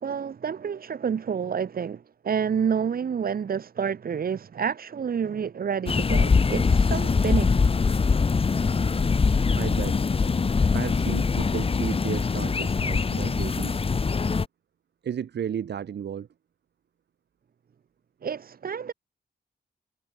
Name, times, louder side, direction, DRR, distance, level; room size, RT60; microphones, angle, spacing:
voice 1, 0.0-7.5 18.2-18.9, right 7 dB, 60° right, 1.3 m, -29 dB
sound 1, 5.9-14.5, left 4 dB, 35° left, 0.9 m, -23 dB
voice 2, 9.5-10.0 10.7-13.9 15.0-16.3, right 8 dB, 80° right, 1.6 m, -33 dB
wide cardioid pair, 105°, 17 cm